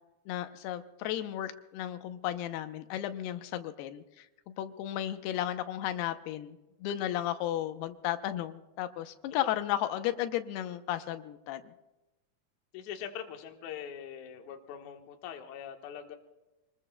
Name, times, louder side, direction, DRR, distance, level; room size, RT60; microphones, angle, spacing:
voice 1, 0.3-4.3 4.6-11.6, left 12 dB, 90° left, 9 dB, 2.8 m, -34 dB
voice 2, 12.7-16.2, left 8 dB, 65° left, 4 dB, 2.2 m, -42 dB
27.0 x 20.0 x 2.2 m, 1.0 s
omnidirectional pair, 4.5 m